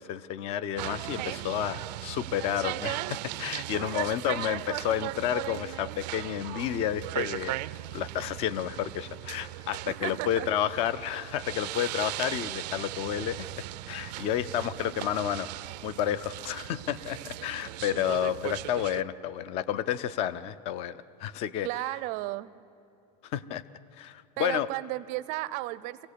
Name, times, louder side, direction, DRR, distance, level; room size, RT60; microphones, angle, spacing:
voice 1, 0.0-7.6 7.9-13.5 13.9-15.5 15.8-21.7 23.2-23.6 23.9-24.7, left 10 dB, 30° left, 18 dB, 0.5 m, -31 dB
sound 1, 0.8-19.0, right 17 dB, 90° right, 0.5 m, -37 dB
voice 2, 9.9-10.5 14.7-15.1 17.9-18.6 21.6-22.5 24.4-26.1, right 19 dB, 35° right, 16 dB, 0.5 m, -35 dB
24.5 x 17.0 x 8.3 m, 2.5 s
supercardioid pair, 175°, 21 cm